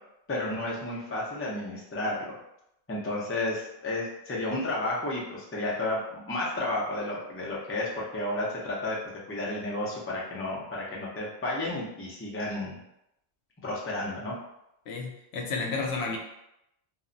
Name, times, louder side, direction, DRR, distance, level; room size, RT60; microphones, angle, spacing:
voice 1, 0.3-2.3 2.9-9.0 9.3-12.8 13.6-14.4, left 2 dB, 20° left, -4 dB, 0.4 m, -32 dB
voice 2, 14.9-16.2, left 4 dB, 85° left, 1 dB, 0.8 m, -31 dB
2.2 x 2.1 x 3.8 m, 0.82 s
omnidirectional pair, 1.1 m